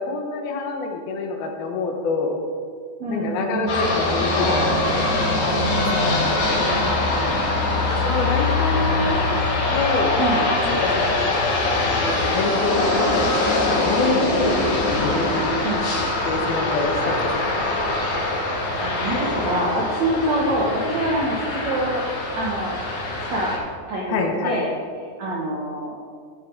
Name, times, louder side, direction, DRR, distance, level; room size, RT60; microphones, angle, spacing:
voice 1, 0.0-2.4 3.1-5.1 7.9-9.2 9.7-10.2 10.7-11.1 11.7-15.5 16.3-17.5 24.1-24.6, left 3 dB, 70° left, 2 dB, 2.7 m, -26 dB
voice 2, 3.0-3.8 5.8-7.8 10.1-10.5 15.6-15.9 18.8-22.0 22.3-22.8 23.2-23.5 23.9-24.7 25.2-25.9, right 1 dB, 70° right, -3 dB, 1.7 m, -26 dB
sound 1, 3.7-23.6, left 2 dB, 90° left, 4.4 m, -23 dB
16.0 x 7.8 x 3.9 m, 2.1 s
omnidirectional pair, 4.8 m